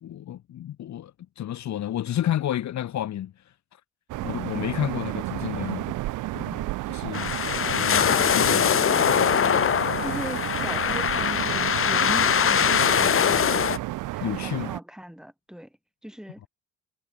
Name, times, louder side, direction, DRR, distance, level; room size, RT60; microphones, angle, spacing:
voice 1, 0.0-3.3 4.2-6.0 6.3-7.3 7.7-8.6 14.2-14.7, left 11 dB, 65° left, 1.6 m, -31 dB
sound 1, 4.1-14.8, right 17 dB, 90° right, 1.1 m, -32 dB
sound 2, 7.1-13.8, left 8 dB, 45° left, 1.5 m, -22 dB
voice 2, 10.0-13.6 14.1-15.7 16.0-16.4, equal, ahead, 6.4 m, -39 dB
cardioid pair, 90°, 30 cm